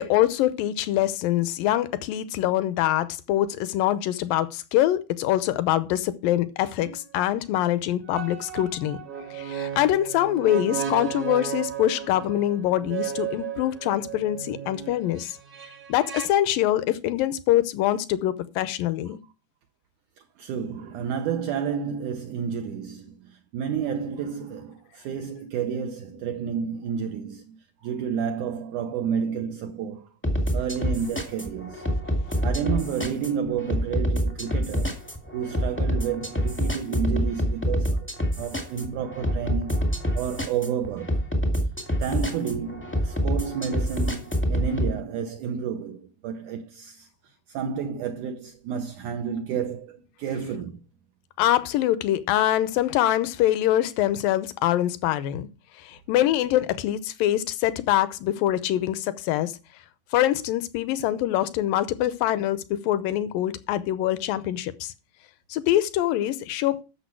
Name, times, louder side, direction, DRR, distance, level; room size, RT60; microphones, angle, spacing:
voice 1, 0.0-9.0 9.3-15.4 15.9-19.2 51.4-55.5 55.8-59.6 60.1-64.9 65.5-66.8, left 13 dB, 75° left, 2.4 m, -24 dB
sound 1, 6.8-7.0 8.1-16.3, right 9 dB, 45° right, 1.2 m, -34 dB
voice 2, 20.2-30.1 30.5-31.9 32.4-35.0 35.3-38.1 38.4-39.9 40.2-41.2 42.0-50.8, right 7 dB, 75° right, 1.9 m, -30 dB
sound 2, 30.2-44.9, equal, 10° left, 0.8 m, -27 dB
12.5 x 6.9 x 4.6 m
omnidirectional pair, 4.3 m